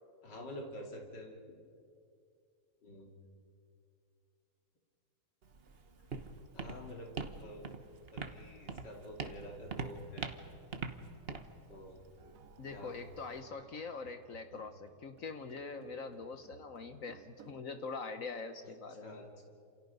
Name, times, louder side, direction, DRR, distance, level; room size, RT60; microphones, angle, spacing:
voice 1, 0.2-1.3 2.8-3.1 6.5-7.7 8.1-10.3 11.7-12.3 12.7-13.0 14.5-14.7 18.6-18.7 19.0-19.4, equal, 85° left, 1 dB, 3.4 m, -48 dB
Walk footsteps, 5.4-13.4, right 4 dB, 40° right, 1.2 m, -44 dB
sound 1, 12.2-17.6, right 7 dB, 60° right, 1.1 m, -60 dB
voice 2, 12.6-19.2, left 4 dB, 55° left, 8 dB, 1.3 m, -43 dB
28.5 x 28.0 x 5.4 m, 2.4 s
omnidirectional pair, 1.8 m